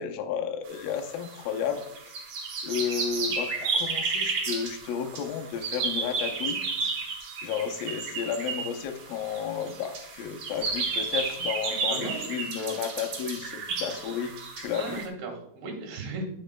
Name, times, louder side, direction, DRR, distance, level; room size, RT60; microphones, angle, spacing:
voice 1, 0.0-1.8 2.6-6.6 7.4-15.0, left 7 dB, 75° left, 5 dB, 2.4 m, -32 dB
sound 1, 0.7-15.1, right 4 dB, 55° right, 2.2 m, -32 dB
voice 2, 11.9-12.2 14.8-16.2, right 3 dB, 85° right, 1 dB, 3.7 m, -36 dB
10.5 x 8.4 x 2.2 m, 0.78 s
omnidirectional pair, 4.4 m